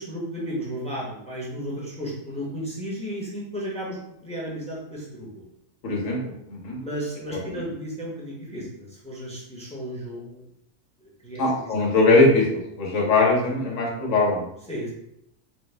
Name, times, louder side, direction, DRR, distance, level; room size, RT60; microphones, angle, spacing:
voice 1, 0.0-5.4 6.7-10.4 11.0-11.7 12.9-13.1 14.7-14.9, equal, 5° left, -6 dB, 0.7 m, -34 dB
voice 2, 5.8-6.8 7.3-7.4 11.4-12.5 12.8-14.5, left 2 dB, 90° left, -2 dB, 1.2 m, -21 dB
3.9 x 2.2 x 3.2 m, 0.79 s
omnidirectional pair, 1.3 m